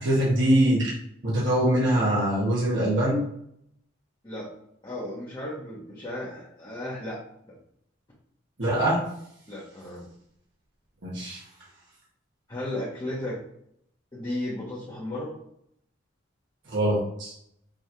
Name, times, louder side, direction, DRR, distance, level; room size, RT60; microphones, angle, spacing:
voice 1, 0.0-0.9 1.2-3.3 8.6-9.0 11.0-11.4 16.7-17.3, right 1 dB, 65° right, -6 dB, 1.3 m, -23 dB
voice 2, 4.8-7.5 9.5-10.1 12.5-13.4 14.1-15.3, left 1 dB, 20° left, -6 dB, 0.8 m, -34 dB
4.9 x 3.0 x 2.8 m, 0.73 s
head